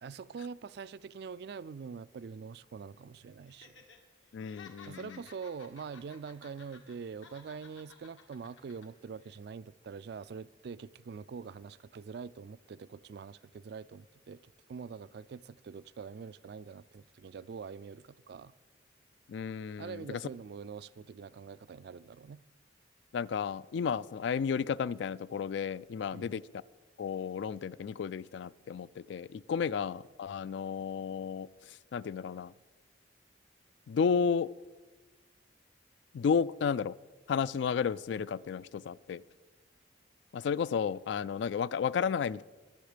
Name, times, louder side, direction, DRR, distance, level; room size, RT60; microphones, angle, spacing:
voice 1, 0.0-3.7 4.9-18.5 19.8-22.4 26.1-26.3, right 5 dB, 55° right, 0.3 m, -44 dB
Laughter, 3.5-4.0 4.3-7.0 7.2-8.9 9.2-9.4, left 5 dB, 85° left, 1.8 m, -55 dB
voice 2, 4.3-5.2 19.3-20.2 23.1-26.6 27.0-32.5 33.9-34.5 36.1-37.0 37.3-39.2 40.3-42.4, left 6 dB, 65° left, 0.3 m, -33 dB
21.0 x 7.2 x 5.0 m
head